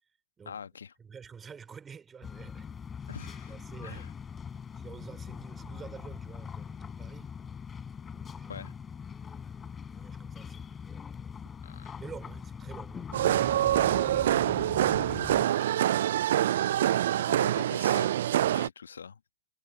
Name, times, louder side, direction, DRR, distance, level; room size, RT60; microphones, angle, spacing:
voice 1, 0.4-0.9 3.1-3.5 3.8-4.1 8.5-8.7 11.6-11.9 17.3-18.1 18.5-19.2, left 6 dB, 80° left, 1.3 m, -43 dB
voice 2, 1.0-2.7 3.5-4.1 4.7-7.3 8.1-8.6 9.9-11.3 12.0-14.6, right 6 dB, 20° right, 3.2 m, -49 dB
sound 1, 2.2-15.5, left 6 dB, 20° left, 6.1 m, -42 dB
sound 2, 13.1-18.7, right 12 dB, 65° right, 0.4 m, -25 dB
hypercardioid pair, 105°, 0 cm